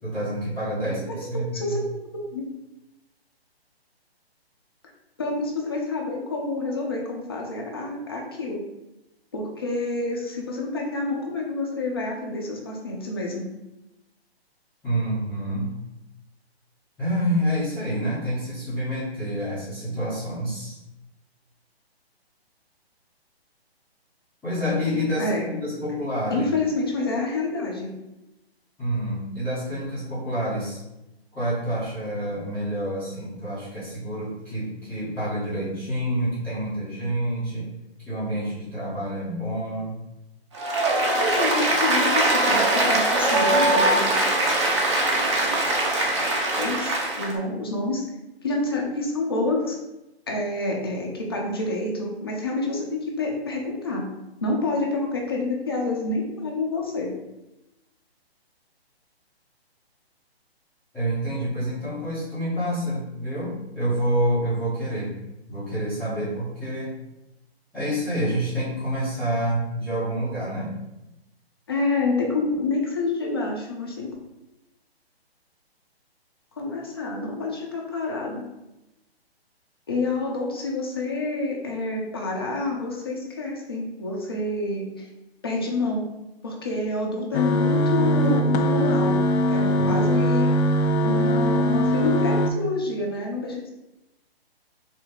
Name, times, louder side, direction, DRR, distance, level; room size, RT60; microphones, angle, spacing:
voice 1, 0.0-1.8 14.8-15.8 17.0-20.8 24.4-26.5 28.8-30.8 31.3-37.7 38.0-40.0 60.9-65.1 65.5-66.9 67.7-70.7 89.8-90.0, equal, 5° left, -14 dB, 0.9 m, -28 dB
voice 2, 1.5-1.8 2.1-2.4 5.2-8.6 9.3-13.5 25.2-25.5 26.3-27.9 41.2-44.1 46.6-48.0 48.4-49.8 50.3-54.0 54.4-57.1 71.7-74.1 76.6-78.4 79.9-85.1 85.4-86.1 86.4-89.2 89.5-90.5 91.0-93.7, left 2 dB, 25° left, -2 dB, 0.4 m, -28 dB
Applause, 40.5-47.3, right 2 dB, 30° right, 0.5 m, -22 dB
sound 1, 87.3-92.5, equal, 85° left, 0.5 m, -21 dB
3.0 x 2.7 x 3.5 m, 0.95 s
hypercardioid pair, 155°, 32 cm